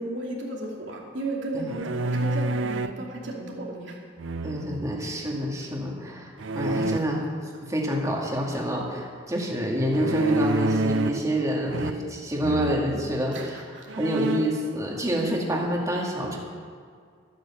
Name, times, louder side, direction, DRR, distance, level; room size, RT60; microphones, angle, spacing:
voice 1, 0.0-4.0 13.3-13.9, right 2 dB, 70° right, -2 dB, 2.8 m, -34 dB
sound 1, 1.7-3.0 4.2-4.9 6.4-7.0 9.9-11.3 11.7-12.2 12.4-12.8 13.4-13.5 13.9-14.6, right 2 dB, 85° right, 0.6 m, -28 dB
voice 2, 4.4-13.6 13.9-16.4, equal, 15° right, -2 dB, 2.2 m, -27 dB
13.0 x 9.3 x 7.3 m, 2.1 s
head